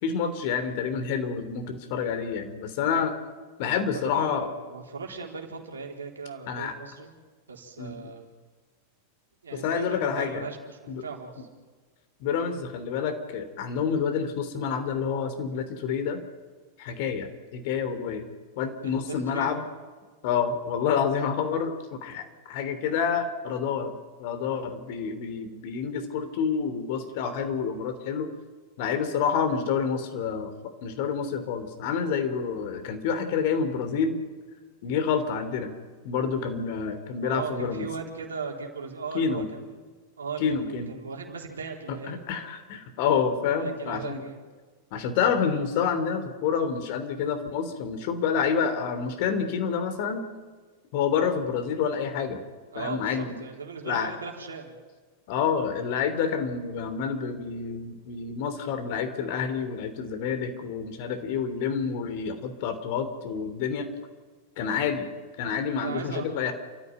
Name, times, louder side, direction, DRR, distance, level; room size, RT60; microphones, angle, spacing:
voice 1, 0.0-3.1 3.6-4.5 6.5-6.7 7.8-8.0 9.5-10.4 10.9-11.0 12.2-16.2 16.8-18.3 18.6-19.6 20.2-23.9 24.2-28.3 28.8-30.5 30.8-34.2 34.8-35.7 36.0-37.9 39.1-39.5 40.4-40.9 41.9-44.2 44.9-50.2 50.9-52.4 52.7-53.3 53.9-54.1 55.3-63.9 64.6-65.1 65.4-66.5, left 6 dB, 50° left, 8 dB, 3.1 m, -28 dB
voice 2, 3.8-7.1 7.5-8.3 9.4-11.5 18.8-19.5 37.2-39.8 40.2-42.2 43.6-44.4 52.7-54.7 65.7-66.5, right 5 dB, 70° right, 1 dB, 3.9 m, -38 dB
29.0 x 14.0 x 9.3 m, 1.4 s
figure-of-eight pair, 90°, 0 cm